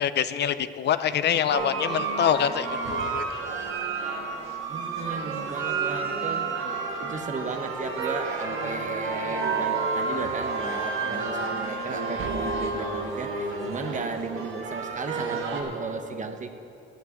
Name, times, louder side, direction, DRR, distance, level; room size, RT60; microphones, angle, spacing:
voice 1, 0.0-3.4, left 9 dB, 60° left, 13 dB, 0.5 m, -25 dB
sound 1, 1.5-15.6, right 4 dB, 90° right, 1.5 m, -30 dB
voice 2, 4.7-6.5 7.0-16.5, right 4 dB, 40° right, 7 dB, 1.1 m, -35 dB
11.0 x 8.2 x 8.1 m, 2.8 s
cardioid pair, 90°, 20 cm